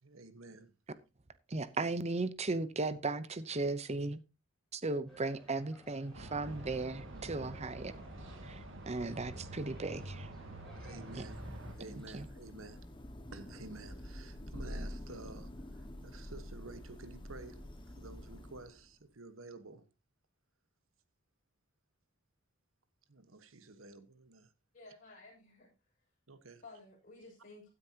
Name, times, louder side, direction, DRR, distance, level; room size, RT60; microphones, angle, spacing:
voice 1, 0.0-0.7 9.0-9.2 10.7-11.4 11.7-12.9 13.3-19.8 23.1-24.5 26.3-26.6, right 2 dB, 90° right, 1.4 m, -51 dB
voice 2, 1.5-4.2 4.7-7.9 8.4-8.6 8.9-10.3 11.1-11.2 11.9-12.3, right 3 dB, 35° right, 0.8 m, -36 dB
sound 1, 5.1-12.2, right 1 dB, ahead, 7.5 m, -59 dB
sound 2, 6.1-11.7, right 1 dB, 65° right, 2.1 m, -47 dB
Thunder / Rain, 10.9-18.9, left 1 dB, 25° left, 1.6 m, -47 dB
voice 3, 24.7-25.7 26.6-27.7, left 3 dB, 40° left, 6.2 m, -54 dB
16.0 x 9.8 x 2.9 m
head